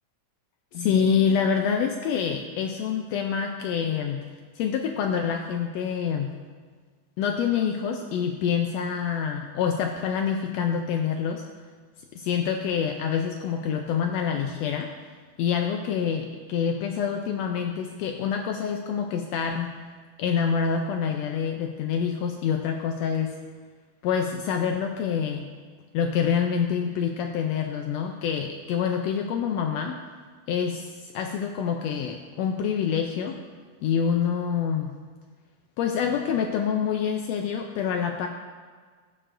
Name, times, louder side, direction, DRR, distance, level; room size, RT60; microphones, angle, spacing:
voice 1, 0.7-4.3 4.5-6.4 7.2-11.4 12.1-14.9 15.4-19.7 20.2-23.3 24.0-25.5 25.9-30.0 30.5-33.4 33.8-35.0 35.8-38.3, left 7 dB, 80° left, 4 dB, 1.5 m, -26 dB
15.0 x 6.9 x 2.5 m, 1.6 s
omnidirectional pair, 3.4 m